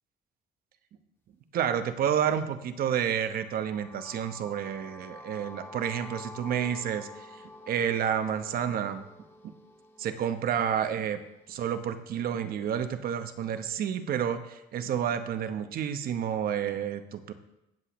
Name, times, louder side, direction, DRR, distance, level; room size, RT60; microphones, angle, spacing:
voice 1, 1.5-7.3 7.7-9.0 10.0-11.2 11.5-17.3, right 9 dB, 60° right, 9 dB, 1.0 m, -30 dB
sound 1, 3.4-11.4, left 2 dB, 15° left, 1.6 m, -48 dB
16.5 x 7.7 x 3.1 m, 0.88 s
cardioid pair, 110°, 17 cm